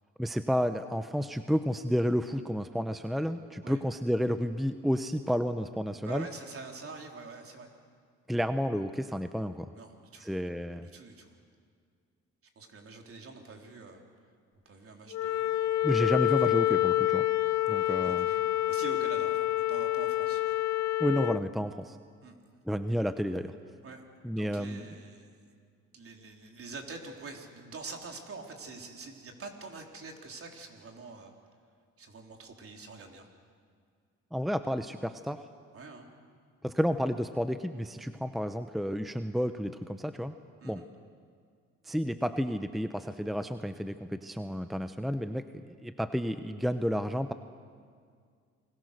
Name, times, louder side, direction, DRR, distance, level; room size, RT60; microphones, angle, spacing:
voice 1, 0.2-6.3 8.3-9.7 10.2-10.9 15.8-17.3 17.7-18.3 21.0-22.0 22.7-23.6 24.2-24.8 34.3-35.5 36.6-40.3 40.6-40.8 41.8-47.3, equal, ahead, 9 dB, 0.8 m, -31 dB
voice 2, 6.0-7.7 9.7-10.3 10.8-11.3 12.6-14.0 14.7-15.9 17.8-20.6 20.8-20.9 22.2-22.4 23.8-24.0 24.4-25.6 25.9-31.3 32.0-33.3 35.7-36.1 40.6-40.9, right 3 dB, 45° right, 2 dB, 3.7 m, -46 dB
Wind instrument woodwind instrument, 15.1-21.4, left 15 dB, 65° left, 0.7 m, -27 dB
29.0 x 21.0 x 6.6 m, 2.1 s
cardioid pair, 90°, 30 cm